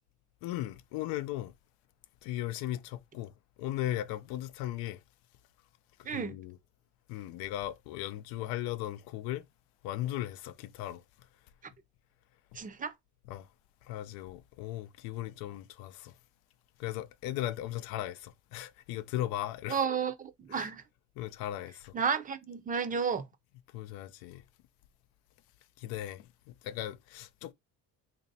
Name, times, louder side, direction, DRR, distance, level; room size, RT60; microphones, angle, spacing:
voice 1, 0.4-1.5 2.2-3.3 3.6-5.0 6.0-6.6 7.1-9.4 9.8-11.0 13.3-13.5 13.8-16.1 16.8-19.8 20.5-20.7 21.2-21.9 23.7-24.4 25.8-27.5, left 13 dB, 90° left, 0.5 m, -37 dB
voice 2, 6.0-6.4 12.5-12.9 19.7-20.8 21.9-23.2, right 6 dB, 25° right, 0.5 m, -32 dB
2.9 x 2.6 x 4.0 m
cardioid pair, 115°, 35 cm